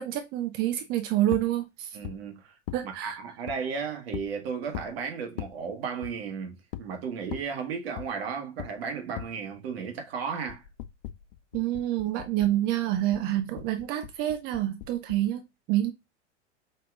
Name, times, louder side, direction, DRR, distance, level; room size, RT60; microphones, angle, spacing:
voice 1, 0.0-2.0 2.7-3.2 11.5-15.9, right 13 dB, 30° right, 0.4 m, -28 dB
sound 1, 1.3-1.5 2.0-2.2 2.7-2.8 3.5-3.6 4.1-4.3 4.7-4.9 5.4-5.5 6.0-6.2 6.7-6.9 7.3-7.5 8.0-8.1 8.6-8.7 9.2-9.3 10.5-12.6 12.9-15.3, left 14 dB, 50° left, 0.5 m, -39 dB
voice 2, 1.9-2.5 2.8-10.6, right 6 dB, 55° right, 1.3 m, -34 dB
5.3 x 2.8 x 2.4 m
figure-of-eight pair, 85°, 36 cm